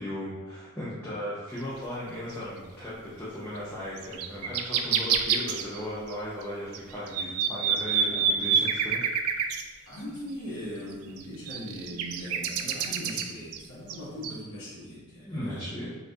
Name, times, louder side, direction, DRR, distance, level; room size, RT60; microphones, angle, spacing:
voice 1, 0.0-9.0 15.2-15.9, equal, 10° left, -10 dB, 0.7 m, -37 dB
sound 1, 2.3-2.4 3.6-3.7 4.0-6.1 6.4-6.5 6.7-9.6 10.9-13.6 13.9-14.0 14.2-14.4, right 7 dB, 90° right, 0.4 m, -27 dB
voice 2, 9.9-15.7, equal, 65° left, -10 dB, 1.3 m, -40 dB
4.3 x 3.2 x 2.6 m, 1.3 s
head